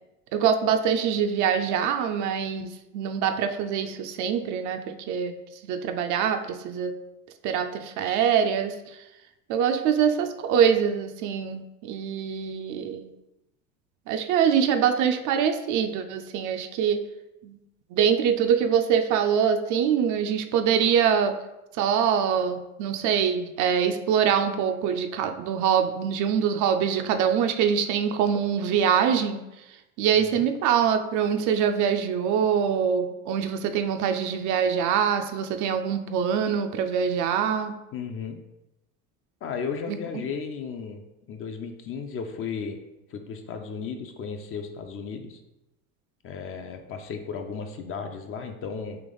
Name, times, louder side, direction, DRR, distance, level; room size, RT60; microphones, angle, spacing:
voice 1, 0.3-5.4 5.6-7.0 7.4-9.1 9.5-13.1 14.1-17.0 17.4-17.6 17.9-21.4 21.7-37.7 39.9-40.2, right 8 dB, 50° right, 7 dB, 0.4 m, -24 dB
voice 2, 37.9-38.4 39.4-41.0 41.3-42.8 43.1-45.4 46.2-49.0, left 6 dB, 35° left, 5 dB, 0.4 m, -34 dB
3.4 x 2.9 x 3.8 m, 0.95 s
supercardioid pair, 95°, 41 cm